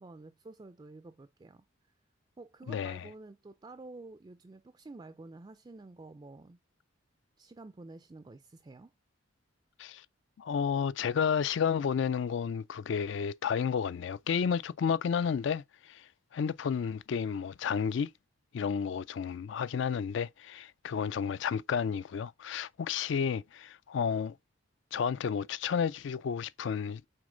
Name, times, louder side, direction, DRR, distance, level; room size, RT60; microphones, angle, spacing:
voice 1, 0.0-1.6 2.4-6.6 7.4-8.9 18.8-19.0, right 2 dB, 20° right, 0.3 m, -50 dB
voice 2, 2.7-3.0 9.8-10.0 10.4-16.1 16.3-18.1 18.5-24.4 24.9-27.0, left 7 dB, 60° left, 0.3 m, -31 dB
6.3 x 4.3 x 3.8 m
head